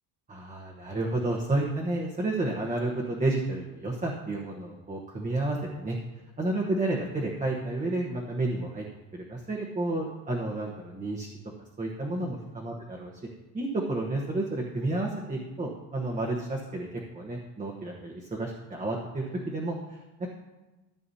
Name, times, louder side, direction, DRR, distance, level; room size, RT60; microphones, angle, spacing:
voice 1, 0.3-6.0 6.4-8.8 9.1-11.3 11.8-13.1 13.5-16.9 17.1-19.7, right 2 dB, 20° right, -2 dB, 1.1 m, -31 dB
14.5 x 7.7 x 2.8 m, 1.1 s
cardioid pair, 135°, 40 cm